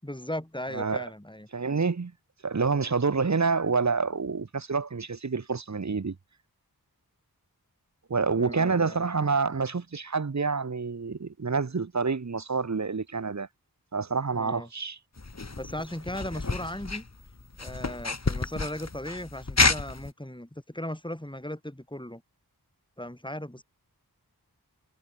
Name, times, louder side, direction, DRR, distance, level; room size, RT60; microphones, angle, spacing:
voice 1, 0.0-1.5 8.4-9.1 14.3-14.7 15.6-17.1 17.6-22.2 23.0-23.6, left 1 dB, 10° left, 4.6 m, -37 dB
voice 2, 0.7-1.1 1.5-2.1 2.4-6.2 8.1-13.5 13.9-15.0, right 4 dB, 45° right, 0.9 m, -27 dB
sound 1, 15.2-20.1, left 3 dB, 45° left, 1.6 m, -29 dB
wide cardioid pair, 45°, 38 cm